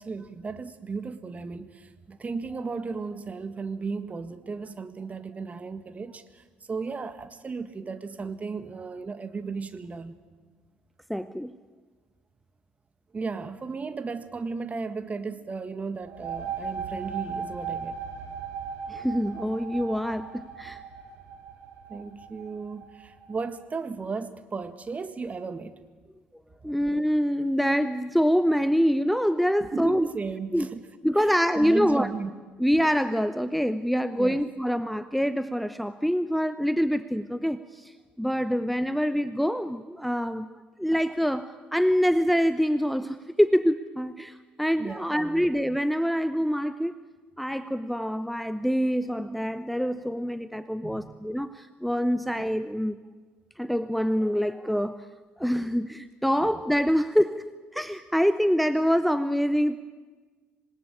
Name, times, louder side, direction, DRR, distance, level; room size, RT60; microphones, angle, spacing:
voice 1, 0.0-10.2 13.1-18.0 21.9-25.8 29.6-30.9 31.2-32.3 34.2-34.4 44.8-45.5 50.8-51.1 52.1-52.2 55.6-55.7, right 4 dB, 30° right, 1.8 m, -35 dB
voice 2, 11.1-11.6 18.9-20.8 26.6-30.1 30.5-30.7 31.0-32.1 32.6-40.5 40.8-46.9 47.4-53.0 53.6-55.0 55.4-57.4 57.7-59.8, equal, ahead, 0.9 m, -25 dB
sound 1, 16.0-23.4, right 6 dB, 55° right, 4.0 m, -37 dB
26.5 x 19.5 x 9.0 m
figure-of-eight pair, 50°, 5 cm